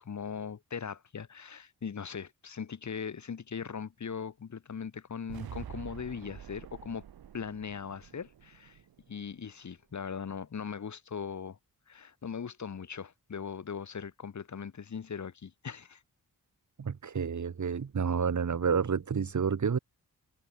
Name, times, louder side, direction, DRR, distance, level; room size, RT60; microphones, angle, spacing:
voice 1, 0.0-7.0 7.3-8.8 9.1-11.6 11.9-16.0, left 6 dB, 50° left, 1.3 m, -39 dB
sound 1, 5.3-9.4, right 9 dB, 75° right, 1.2 m, -47 dB
voice 2, 16.8-19.8, right 6 dB, 50° right, 1.8 m, -29 dB
cardioid pair, 70°, 37 cm